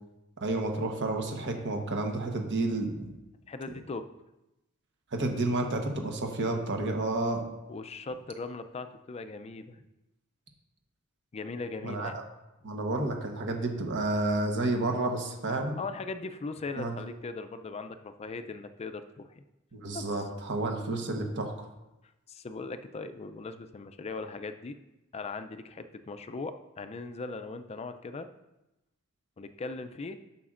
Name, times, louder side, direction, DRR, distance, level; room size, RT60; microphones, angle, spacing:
voice 1, 0.4-3.1 5.1-7.4 11.8-12.1 12.6-15.8 16.8-16.9 19.7-21.5, right 2 dB, 55° right, 3 dB, 1.1 m, -30 dB
voice 2, 3.5-4.0 7.7-9.8 11.3-12.2 15.8-19.4 19.9-20.1 22.3-24.8 25.1-28.3 29.4-30.2, left 3 dB, 30° left, 9 dB, 0.4 m, -39 dB
11.0 x 5.8 x 2.5 m, 0.96 s
head